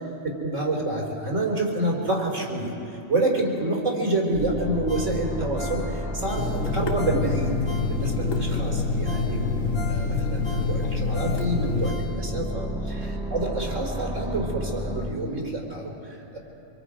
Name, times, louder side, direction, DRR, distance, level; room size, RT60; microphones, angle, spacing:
voice 1, 0.4-2.7 3.1-7.5 7.9-16.4, right 2 dB, 75° right, -2 dB, 4.0 m, -28 dB
sound 1, 4.3-15.1, left 1 dB, 5° right, 1.5 m, -32 dB
Ringtone, 4.9-8.3 8.7-8.8 9.0-12.5 12.9-13.0, equal, 40° left, 5.4 m, -41 dB
Water tap faucet / Sink (filling or washing), 6.4-11.9, left 4 dB, 90° left, 1.6 m, -27 dB
25.5 x 23.0 x 5.1 m, 2.8 s
omnidirectional pair, 1.3 m